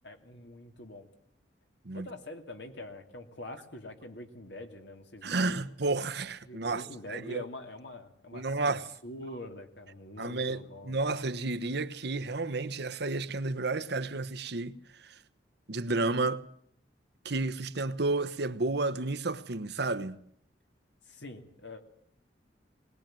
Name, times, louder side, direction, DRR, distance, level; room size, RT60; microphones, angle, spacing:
voice 1, 0.0-1.1 1.9-5.6 6.4-11.0 21.1-21.8, left 1 dB, 70° left, 2.9 m, -45 dB
voice 2, 5.2-7.4 8.3-8.9 10.2-15.2 15.7-16.5 17.2-20.2, right 3 dB, 65° right, 1.1 m, -31 dB
21.0 x 20.0 x 9.0 m
head